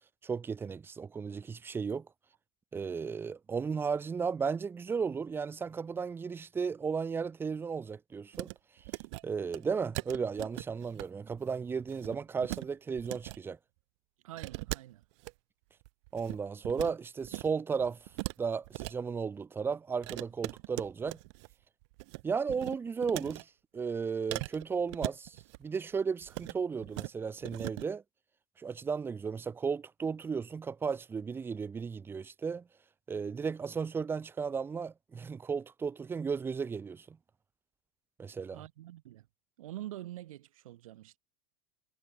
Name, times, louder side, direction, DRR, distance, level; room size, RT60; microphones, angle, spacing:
voice 1, 0.2-2.1 2.7-8.5 9.2-13.6 16.1-18.0 18.4-21.2 22.2-23.5 23.7-28.0 28.6-32.7 33.1-37.2 38.2-38.6, right 5 dB, 15° right, 0.7 m, -34 dB
sound 1, 8.3-8.5 8.8-9.2 9.5-9.6 9.9-11.0 11.3-11.5 11.8-12.6 12.9-13.4 14.4-15.3 15.8-16.9 17.2-17.5 17.8-18.9 20.0-21.5 21.8-22.2 22.5-23.4 24.3-25.6 26.2-26.6 26.8-27.1 27.4-27.8, right 27 dB, 55° right, 2.0 m, -40 dB
voice 2, 14.2-15.0 38.5-39.3 39.6-41.2, right 14 dB, 80° right, 3.6 m, -45 dB
supercardioid pair, 140°, 17 cm